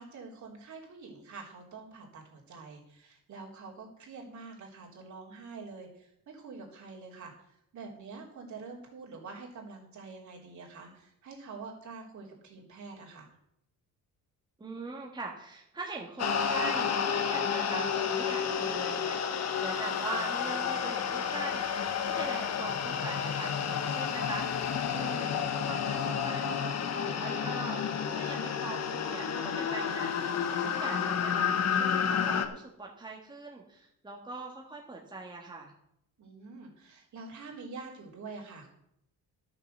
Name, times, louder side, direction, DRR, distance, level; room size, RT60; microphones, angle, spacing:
voice 1, 0.0-7.3 7.7-13.3 30.5-31.2 36.2-38.7, right 4 dB, 55° right, -2 dB, 3.6 m, -46 dB
voice 2, 14.6-24.4 24.9-27.8 28.1-30.1 30.6-35.7, right 3 dB, 15° right, -1 dB, 1.6 m, -42 dB
sound 1, 16.2-32.5, left 7 dB, 50° left, 1.2 m, -31 dB
12.0 x 6.8 x 6.7 m, 0.76 s
cardioid pair, 125°, 34 cm